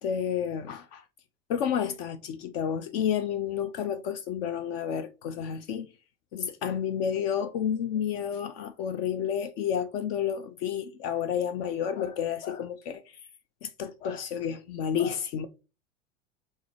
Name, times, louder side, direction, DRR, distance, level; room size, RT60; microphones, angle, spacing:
voice 1, 0.0-1.0 1.5-5.9 6.3-13.0 13.6-15.5, left 8 dB, 55° left, 0.5 m, -30 dB
3.5 x 3.1 x 3.3 m
hypercardioid pair, 80°, 37 cm